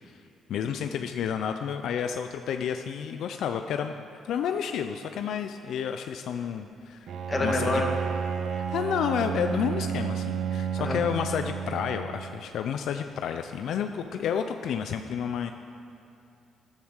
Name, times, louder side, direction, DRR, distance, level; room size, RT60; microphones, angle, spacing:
voice 1, 0.5-3.9 4.2-7.1 7.4-7.8 8.5-15.5, left 8 dB, 75° left, 6 dB, 0.6 m, -30 dB
Bowed string instrument, 7.1-12.4, right 7 dB, 70° right, 0.8 m, -31 dB
voice 2, 7.3-7.9 10.8-11.0, left 2 dB, 25° left, 1 dB, 2.1 m, -27 dB
13.0 x 10.5 x 6.5 m, 2.8 s
cardioid pair, 90°, 0 cm